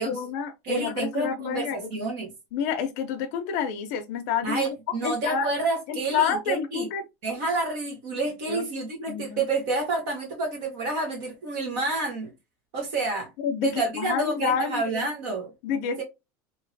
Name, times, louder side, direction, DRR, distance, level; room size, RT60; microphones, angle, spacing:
voice 1, 0.0-1.9 2.5-4.7 5.0-5.5 5.9-7.0 8.5-8.7 9.1-9.4 13.4-15.1 15.6-16.0, left 7 dB, 60° left, 0.6 m, -28 dB
voice 2, 0.6-2.3 4.4-6.9 7.2-12.3 12.7-13.3 13.6-15.5 16.0-16.1, right 3 dB, 60° right, 1.1 m, -29 dB
3.0 x 2.8 x 2.6 m
supercardioid pair, 160°, 9 cm